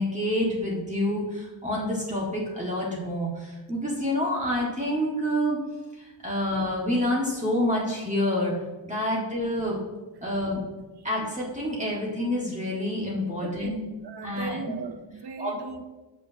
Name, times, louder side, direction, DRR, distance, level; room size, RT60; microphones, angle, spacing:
voice 1, 0.0-5.6 6.0-8.5 8.8-9.8 10.2-10.6 11.0-13.8 14.2-14.6 15.4-15.5, left 1 dB, 15° right, -5 dB, 1.9 m, -28 dB
voice 2, 13.4-13.7 14.0-15.8, right 5 dB, 55° right, 7 dB, 0.9 m, -38 dB
13.0 x 6.3 x 2.9 m, 1.2 s
wide cardioid pair, 130°, 47 cm